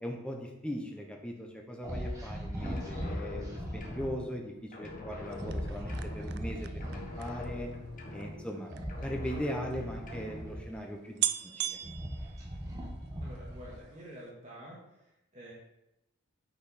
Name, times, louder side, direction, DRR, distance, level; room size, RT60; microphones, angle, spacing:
voice 1, 0.0-7.7 8.1-8.7 9.0-11.2 11.6-11.8, equal, 5° left, 0 dB, 1.0 m, -39 dB
sound 1, 1.8-4.2 5.3-7.7 8.6-10.9 11.5-13.9, equal, 15° right, 1.5 m, -39 dB
sound 2, 2.6-4.5 4.7-6.6 6.8-8.6 8.9-10.6, left 2 dB, 40° left, 1.3 m, -44 dB
sound 3, 5.3-8.9 9.7-9.8 10.0-10.1 10.7-10.8 11.2-13.1 13.5-13.9 14.2-14.3, right 13 dB, 50° right, 0.4 m, -38 dB
voice 2, 13.2-15.5, equal, 35° right, -6 dB, 1.9 m, -49 dB
8.6 x 5.2 x 4.3 m, 0.91 s
head